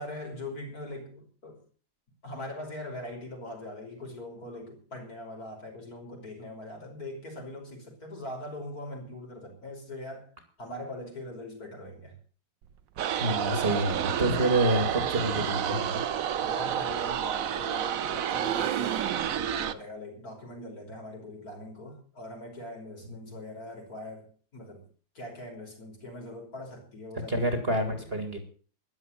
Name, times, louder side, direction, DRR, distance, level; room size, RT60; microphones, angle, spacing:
voice 1, 0.0-1.6 2.2-10.3 10.6-12.2 16.4-24.9 25.1-28.2, left 1 dB, 50° left, 1 dB, 5.9 m, -41 dB
sound 1, 12.6-13.2 14.5-19.8, right 10 dB, 75° right, 1.6 m, -39 dB
sound 2, 13.0-19.7, right 9 dB, 55° right, 1.1 m, -30 dB
voice 2, 13.2-16.0 27.3-28.4, right 1 dB, 30° right, 6 dB, 2.6 m, -27 dB
13.5 x 11.0 x 7.3 m, 0.40 s
omnidirectional pair, 2.1 m